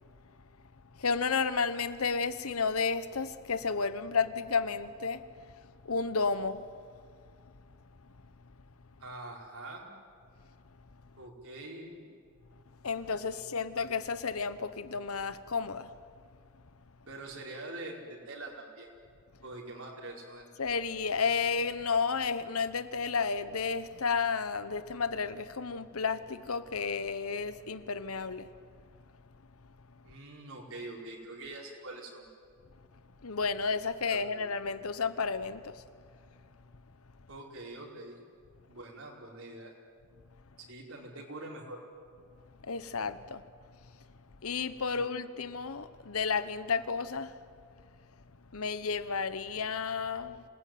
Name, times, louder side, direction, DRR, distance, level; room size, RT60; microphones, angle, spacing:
voice 1, 1.0-5.2 5.8-6.6 12.8-15.9 20.6-28.5 33.2-35.8 42.6-43.4 44.4-47.3 48.5-50.4, left 5 dB, 80° left, 1.1 m, -32 dB
voice 2, 9.0-9.9 11.2-12.2 13.3-13.5 17.1-18.9 19.4-20.5 30.0-32.3 34.1-34.5 37.3-38.2 38.7-39.7 40.6-41.8 44.9-45.1, right 2 dB, 70° right, 4.9 m, -44 dB
27.0 x 19.5 x 9.4 m
head